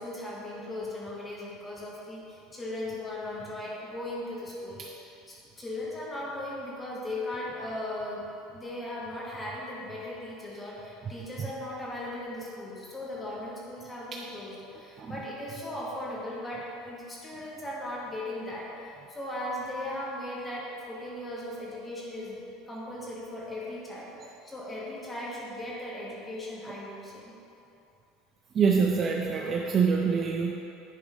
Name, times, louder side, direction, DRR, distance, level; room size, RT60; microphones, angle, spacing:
voice 1, 0.0-8.3 8.5-27.3, left 1 dB, 10° left, -5 dB, 1.3 m, -38 dB
voice 2, 28.5-30.5, right 5 dB, 25° right, 0 dB, 0.4 m, -25 dB
10.0 x 3.5 x 5.0 m, 2.8 s
cardioid pair, 170°, 0 cm